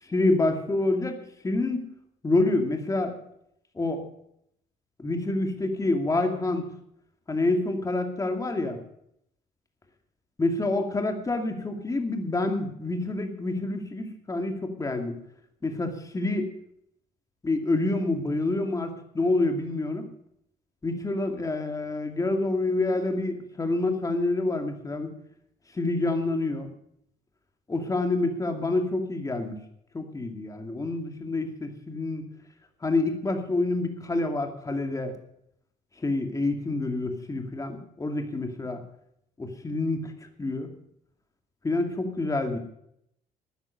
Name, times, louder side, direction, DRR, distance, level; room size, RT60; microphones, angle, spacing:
voice 1, 0.1-1.2 1.4-1.8 2.2-3.2 3.7-4.0 5.0-6.6 7.3-8.8 10.4-15.2 15.6-16.5 17.4-20.0 20.8-25.1 25.7-26.7 27.7-29.6 29.9-32.2 32.8-35.1 36.0-38.8 39.4-40.1 40.4-40.7 41.6-42.6, left 2 dB, 20° left, 5 dB, 2.4 m, -27 dB
13.0 x 9.8 x 6.7 m, 0.73 s
cardioid pair, 110°, 17 cm